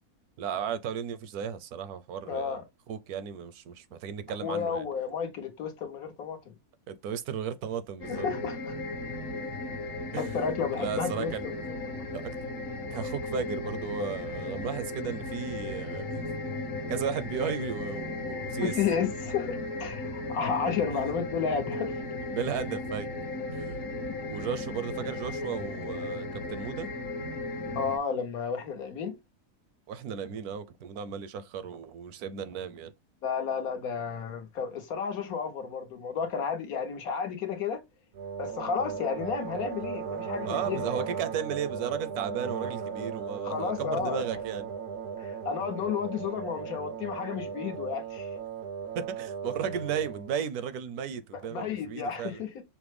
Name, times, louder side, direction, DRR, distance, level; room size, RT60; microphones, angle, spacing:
voice 1, 0.4-2.6 2.9-4.9 6.9-8.3 10.1-10.3 10.8-11.5 12.1-12.4 12.9-16.2 16.9-18.8 20.9-21.0 22.3-23.1 23.5-23.7 24.3-26.9 29.9-32.9 40.5-44.7 48.9-52.4, right 7 dB, 80° right, 1.1 m, -35 dB
voice 2, 2.3-2.6 4.4-6.5 8.1-8.7 10.2-11.6 11.9-12.0 18.6-21.9 24.2-24.3 27.7-29.1 33.2-37.8 38.4-41.0 43.4-44.3 45.2-48.3 51.3-52.6, left 6 dB, 70° left, 1.3 m, -32 dB
sound 1, 8.0-28.0, left 2 dB, 55° left, 1.1 m, -36 dB
sound 2, 38.1-50.4, right 6 dB, 60° right, 0.7 m, -37 dB
5.9 x 2.1 x 3.2 m
omnidirectional pair, 1.6 m